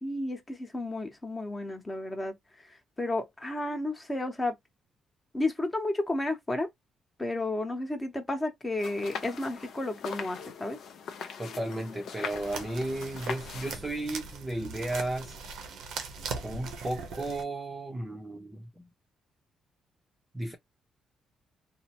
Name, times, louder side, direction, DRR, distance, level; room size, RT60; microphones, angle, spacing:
voice 1, 0.0-2.3 2.6-4.5 5.3-6.7 7.2-10.8, left 2 dB, 20° left, 0.9 m, -32 dB
sound 1, 8.8-13.8, left 6 dB, 70° left, 0.6 m, -41 dB
voice 2, 11.4-15.4 16.4-18.8 20.3-20.6, right 1 dB, 15° right, 0.6 m, -34 dB
sound 2, 12.3-17.4, right 5 dB, 80° right, 0.7 m, -40 dB
2.7 x 2.0 x 2.9 m
cardioid pair, 90°, 0 cm